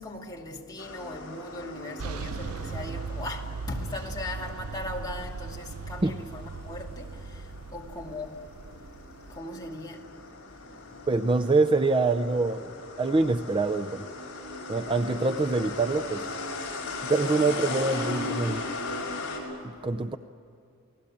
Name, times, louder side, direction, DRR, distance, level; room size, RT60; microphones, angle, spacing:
voice 1, 0.0-7.2 7.7-8.4 9.3-10.0, left 1 dB, 20° left, 2.4 m, -38 dB
sound 1, 0.8-19.4, left 3 dB, 55° left, 6.5 m, -38 dB
sound 2, 2.0-9.4, right 4 dB, 75° right, 0.6 m, -38 dB
voice 2, 11.1-14.1 14.7-16.3 17.1-18.7 19.6-20.2, right 3 dB, 25° right, 0.5 m, -25 dB
29.0 x 19.0 x 8.6 m
head